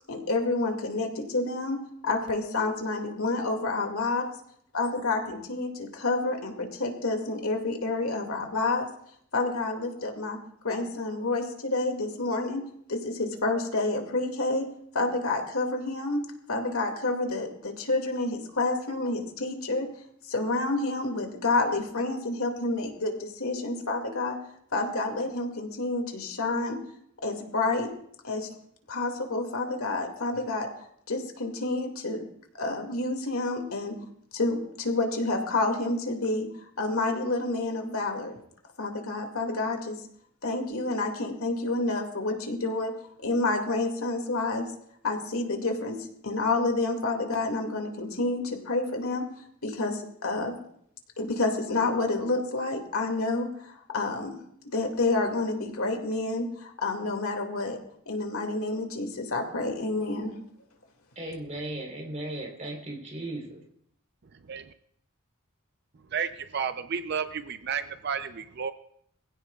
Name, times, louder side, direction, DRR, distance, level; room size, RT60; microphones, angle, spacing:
voice 1, 0.1-4.2 4.7-8.9 9.3-10.4 10.6-12.6 12.9-14.7 14.9-16.2 16.5-19.9 20.3-24.4 24.7-26.8 27.2-27.9 28.2-28.5 28.9-30.7 31.1-32.3 32.5-34.0 34.3-36.5 36.8-38.4 38.8-40.0 40.4-42.9 43.2-44.7 45.0-49.3 49.6-50.6 51.2-54.4 54.7-57.8 58.1-60.4, left 2 dB, 80° left, 3 dB, 2.3 m, -29 dB
voice 2, 61.2-63.6, right 1 dB, 35° right, 0 dB, 3.6 m, -36 dB
voice 3, 66.1-68.7, right 7 dB, 50° right, 10 dB, 0.5 m, -32 dB
23.5 x 16.0 x 2.4 m, 0.68 s
head